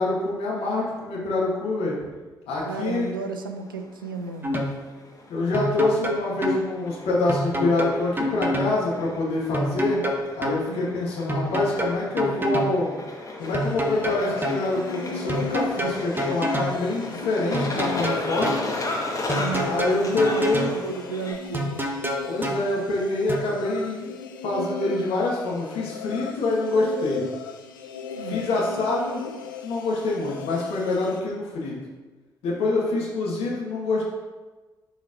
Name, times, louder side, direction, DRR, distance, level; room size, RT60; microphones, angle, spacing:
voice 1, 0.0-2.0 2.5-3.1 5.3-10.0 10.3-12.9 13.4-18.6 19.6-20.7 22.3-24.0 24.4-27.2 28.3-29.3 29.6-31.8 32.4-34.0, left 2 dB, 60° left, -4 dB, 1.7 m, -26 dB
sound 1, 2.6-21.3, left 2 dB, 30° left, 1.4 m, -36 dB
voice 2, 2.7-4.6 10.7-11.0 19.2-21.9 28.1-28.5, right 5 dB, 85° right, 7 dB, 0.4 m, -34 dB
sound 2, 4.4-4.8 5.5-6.6 7.3-8.7 9.5-10.6 11.3-12.8 13.5-14.6 15.3-16.8 17.5-18.6 19.3-20.8 21.5-22.6 23.3-23.4, equal, 20° right, 1.0 m, -27 dB
sound 3, 13.4-31.2, left 6 dB, 80° left, 0.4 m, -37 dB
11.0 x 4.0 x 2.6 m, 1.3 s
figure-of-eight pair, 40°, 11 cm